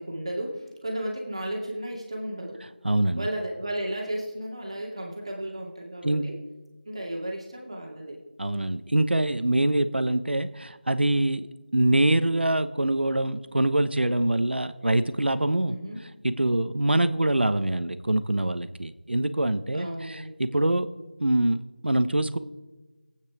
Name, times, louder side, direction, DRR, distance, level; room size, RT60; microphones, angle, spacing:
voice 1, 0.0-2.6 3.2-6.4 6.8-8.2 15.6-16.0 19.7-20.4, right 1 dB, 35° right, -1 dB, 2.3 m, -34 dB
voice 2, 2.8-3.2 6.0-6.3 8.4-11.5 11.7-15.8 16.2-20.9 21.2-22.4, right 1 dB, 80° right, 11 dB, 1.1 m, -24 dB
21.0 x 8.9 x 4.9 m, 1.2 s
figure-of-eight pair, 180°, 6 cm